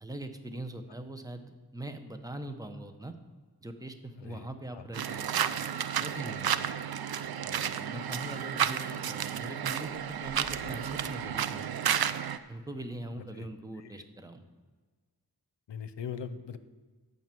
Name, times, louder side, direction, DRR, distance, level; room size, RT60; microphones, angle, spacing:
voice 1, 0.0-3.1 3.6-6.7 7.4-12.0 12.5-14.4, right 1 dB, 10° right, 7 dB, 0.9 m, -42 dB
voice 2, 4.2-4.5 4.7-4.9 8.5-8.7 13.2-13.5 13.8-13.9 15.7-16.6, left 7 dB, 80° left, 12 dB, 0.7 m, -41 dB
sound 1, 4.9-12.4, right 9 dB, 60° right, 0.5 m, -32 dB
sound 2, 10.2-12.3, equal, 85° right, 2.2 m, -53 dB
11.0 x 5.8 x 7.6 m, 1.4 s
wide cardioid pair, 75°, 42 cm